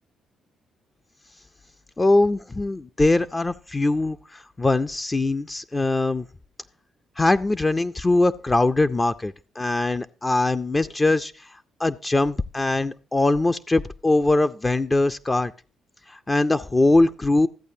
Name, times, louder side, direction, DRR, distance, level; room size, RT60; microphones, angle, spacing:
voice 1, 2.0-6.2 7.2-15.5 16.1-17.5, left 2 dB, 20° left, 9 dB, 0.4 m, -22 dB
14.0 x 8.2 x 2.7 m, 0.38 s
cardioid pair, 90°, 0 cm